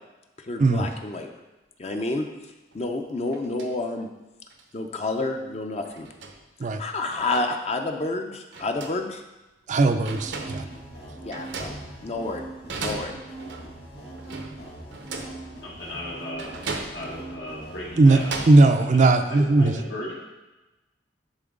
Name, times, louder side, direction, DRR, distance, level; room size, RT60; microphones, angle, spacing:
voice 1, 0.5-1.3 1.8-2.2 2.7-4.1 4.7-6.1 6.8-9.2 11.2-11.7 12.0-12.5 12.8-13.2, left 2 dB, 35° left, 4 dB, 0.5 m, -29 dB
sound 1, 2.7-2.8 3.3-3.7 4.5-4.6 5.8-6.5 7.1-7.6 8.5-9.1 9.7-9.8 10.1-10.8 11.3-12.3 12.7-13.8 14.2-15.5 16.4-17.3 17.9-18.7, right 3 dB, 85° right, 0.8 m, -36 dB
voice 2, 9.7-10.7 18.0-18.2 18.5-19.7, right 2 dB, 45° right, 7 dB, 0.4 m, -18 dB
sound 2, 10.1-18.4, right 2 dB, 65° left, 2.2 m, -41 dB
voice 3, 15.6-16.5 16.9-18.3 18.6-20.2, left 1 dB, 85° left, -5 dB, 1.9 m, -36 dB
10.5 x 3.9 x 3.8 m, 1.1 s
head